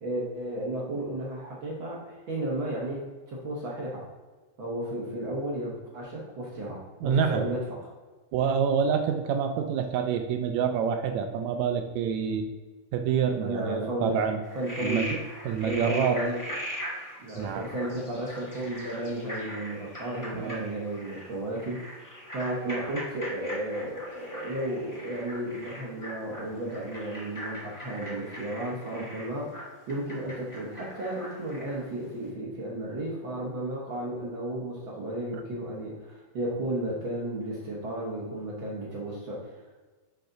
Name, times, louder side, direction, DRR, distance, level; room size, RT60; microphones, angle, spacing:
voice 1, 0.0-4.1 4.6-7.8 13.4-14.2 14.5-15.1 15.6-16.5 17.2-39.6, right 1 dB, 60° right, -4 dB, 1.4 m, -33 dB
voice 2, 7.0-7.4 8.3-12.5 12.9-14.4 14.8-15.2 15.5-16.2 17.4-17.6 20.3-20.7, right 7 dB, 80° right, 5 dB, 1.7 m, -27 dB
Frog, 14.4-31.9, equal, 15° left, 0.6 m, -40 dB
6.7 x 5.0 x 3.9 m, 1.3 s
omnidirectional pair, 3.6 m